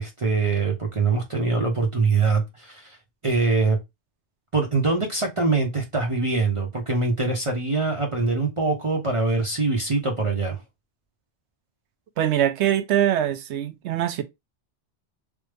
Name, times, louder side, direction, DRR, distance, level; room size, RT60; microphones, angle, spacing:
voice 1, 0.0-3.0 3.2-3.8 4.5-10.6, right 3 dB, 35° right, 0.7 m, -23 dB
voice 2, 12.2-14.2, right 11 dB, 80° right, 0.9 m, -23 dB
3.3 x 2.0 x 3.3 m
omnidirectional pair, 1.1 m